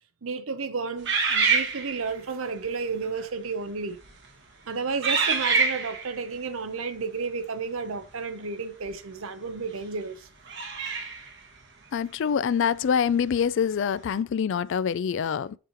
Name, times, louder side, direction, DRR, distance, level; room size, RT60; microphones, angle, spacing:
voice 1, 0.2-4.0 4.7-10.3, right 4 dB, 80° right, 0.8 m, -32 dB
sound 1, 1.0-2.2 3.0-3.2 3.9-4.3 5.0-6.1 8.8-8.9 10.4-11.3, right 5 dB, 55° right, 1.5 m, -25 dB
voice 2, 11.9-15.6, left 7 dB, 60° left, 0.3 m, -25 dB
6.9 x 3.2 x 5.6 m
head